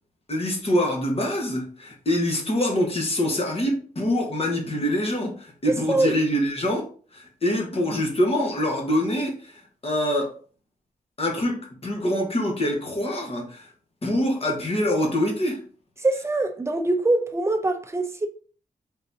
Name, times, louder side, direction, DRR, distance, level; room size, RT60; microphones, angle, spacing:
voice 1, 0.3-9.5 9.8-10.3 11.2-13.7 14.0-15.6, left 1 dB, 40° left, 1.3 m, -25 dB
voice 2, 16.0-18.3, right 2 dB, 20° right, 0.5 m, -23 dB
3.9 x 3.8 x 2.8 m
wide cardioid pair, 95°, 15 cm